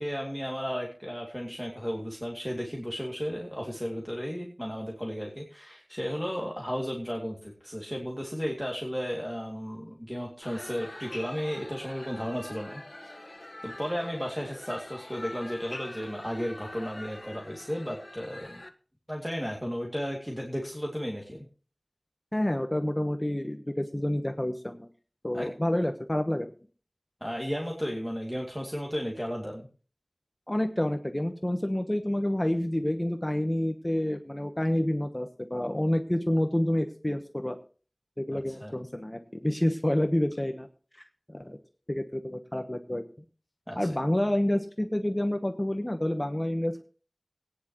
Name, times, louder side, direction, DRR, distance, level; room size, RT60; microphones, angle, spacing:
voice 1, 0.0-12.8 13.2-18.6 19.1-21.4 25.3-25.5 27.2-29.7 38.5-38.8 43.7-43.9, equal, ahead, -1 dB, 2.5 m, -34 dB
sound 1, 10.4-18.7, left 1 dB, 45° left, 1.4 m, -44 dB
voice 2, 22.3-24.9 25.2-26.5 30.5-37.6 38.2-40.7 41.3-41.6 41.9-43.0 43.8-46.8, left 1 dB, 30° left, 6 dB, 1.1 m, -28 dB
18.5 x 10.0 x 3.1 m, 0.38 s
wide cardioid pair, 40°, 0 cm